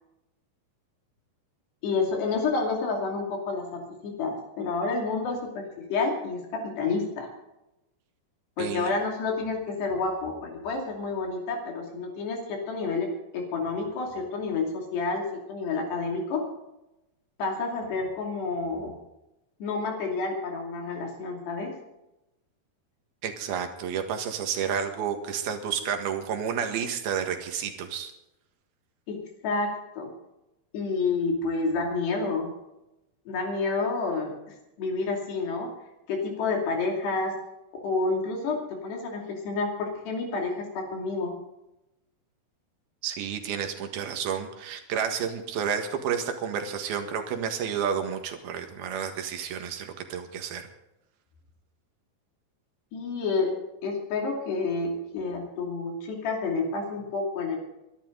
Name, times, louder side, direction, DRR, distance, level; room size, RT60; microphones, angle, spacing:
voice 1, 1.8-7.3 8.6-16.5 17.4-19.0 19.6-21.7 29.1-30.1 30.7-32.5 33.3-35.7 36.1-37.3 37.8-41.3 52.9-53.6 53.8-57.6, left 3 dB, 75° left, 0 dB, 4.7 m, -29 dB
voice 2, 8.6-8.9 23.2-28.1 43.0-50.7, right 7 dB, 65° right, 5 dB, 3.3 m, -31 dB
23.5 x 12.0 x 3.9 m, 0.93 s
omnidirectional pair, 4.9 m